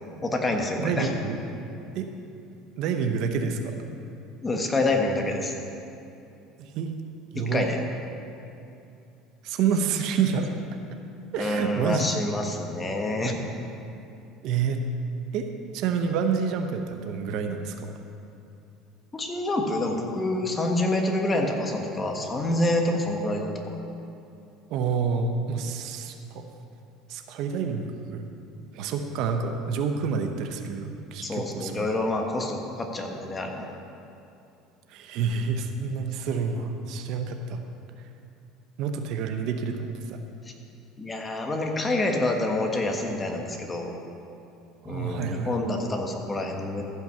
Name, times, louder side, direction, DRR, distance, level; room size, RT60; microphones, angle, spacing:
voice 1, 0.2-1.1 4.4-5.5 7.3-7.8 11.4-13.4 19.1-23.8 31.2-33.7 41.0-43.9 44.8-46.8, left 2 dB, 20° left, 3 dB, 1.4 m, -27 dB
voice 2, 0.8-1.4 1.9-2.1 2.8-3.8 6.6-6.9 7.3-7.7 9.4-10.5 11.3-12.2 14.4-14.8 15.3-15.5 15.7-17.9 24.7-26.5 27.1-28.3 28.7-31.9 34.9-37.6 38.8-40.2 44.8-45.7, right 6 dB, 65° right, 6 dB, 0.8 m, -28 dB
14.5 x 5.8 x 5.7 m, 2.7 s
supercardioid pair, 105°, 0 cm